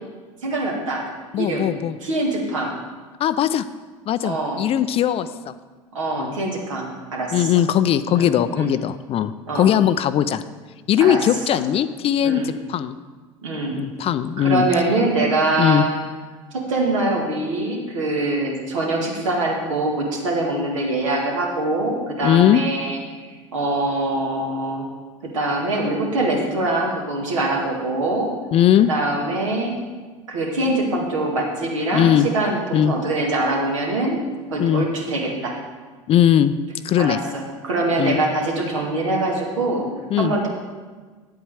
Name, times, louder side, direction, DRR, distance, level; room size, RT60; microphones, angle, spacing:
voice 1, 0.4-1.0 1.4-1.7 2.0-2.8 4.2-4.6 5.9-7.5 8.2-8.7 9.5-9.7 11.0-11.2 12.2-12.5 13.4-13.8 14.4-15.9 16.5-23.3 23.5-24.9 25.2-28.3 28.9-29.7 30.3-34.2 34.5-35.5 37.0-39.9 40.2-40.5, right 2 dB, 75° right, -1 dB, 2.0 m, -23 dB
voice 2, 1.3-2.0 3.2-3.7 4.1-5.5 6.1-6.4 7.3-10.4 10.9-13.0 13.7-14.7 15.6-15.9 22.2-22.6 28.5-28.9 31.9-32.3 32.7-33.0 34.6-34.9 36.1-36.6 36.8-37.2 38.0-38.2 40.1-40.3, left 10 dB, 35° left, 13 dB, 0.4 m, -19 dB
9.6 x 8.1 x 4.8 m, 1.4 s
figure-of-eight pair, 70°, 17 cm